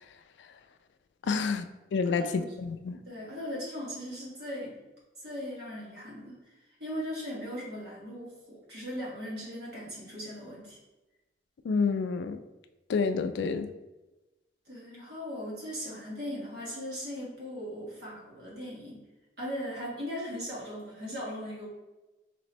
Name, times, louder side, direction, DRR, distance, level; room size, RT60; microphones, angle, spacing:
voice 1, 1.2-1.6 1.9-3.0 11.6-12.4 12.9-13.7, left 5 dB, 70° left, 9 dB, 0.3 m, -28 dB
voice 2, 2.0-2.5 3.1-4.8 5.2-6.4 6.8-10.8 14.6-19.0 19.4-21.7, equal, 60° right, -5 dB, 1.5 m, -38 dB
3.1 x 2.9 x 4.2 m, 1.1 s
head